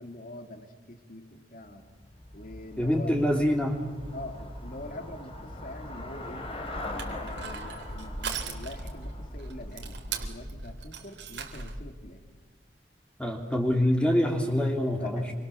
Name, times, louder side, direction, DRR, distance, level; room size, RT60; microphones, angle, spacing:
voice 1, 0.0-1.9 2.3-3.4 4.1-6.5 6.8-12.2 15.0-15.3, left 1 dB, 50° left, 5 dB, 2.8 m, -44 dB
Traffic noise roadway noise / Bicycle, 1.7-10.9, left 1 dB, 35° left, 3.8 m, -41 dB
voice 2, 2.8-3.8 13.2-15.3, equal, 5° left, 2 dB, 3.0 m, -25 dB
Crushing, 6.7-11.9, right 4 dB, 90° right, 3.6 m, -39 dB
28.0 x 25.0 x 7.1 m, 1.5 s
head